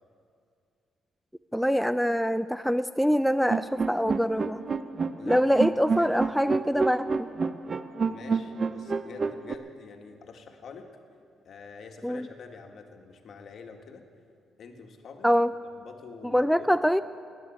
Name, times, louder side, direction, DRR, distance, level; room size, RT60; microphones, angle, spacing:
voice 1, 1.5-4.6 5.3-7.3 12.0-12.3 15.2-15.5 16.3-17.0, equal, ahead, 11 dB, 0.4 m, -24 dB
sound 1, 3.5-9.6, right 4 dB, 40° right, 0.6 m, -28 dB
voice 2, 5.2-6.2 8.0-10.9 11.4-14.0 14.6-15.3 15.8-16.7, left 5 dB, 60° left, 4 dB, 1.7 m, -46 dB
14.0 x 10.5 x 9.2 m, 2.3 s
cardioid pair, 90°, 0 cm